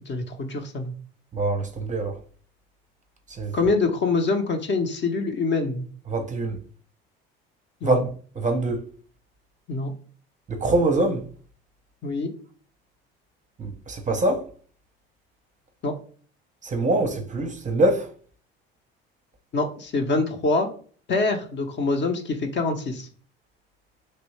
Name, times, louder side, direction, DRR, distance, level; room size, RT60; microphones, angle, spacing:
voice 1, 0.1-0.9 3.5-5.9 7.8-8.0 9.7-9.9 12.0-12.3 15.8-15.9 19.5-20.7 21.1-23.1, left 3 dB, 35° left, 0.7 m, -25 dB
voice 2, 1.3-2.2 3.4-3.5 6.1-6.6 7.8-8.1 8.4-8.8 10.5-11.2 13.6-14.4 16.6-18.1, right 2 dB, 25° right, 0.6 m, -24 dB
3.1 x 2.6 x 3.1 m
hypercardioid pair, 65°, 30 cm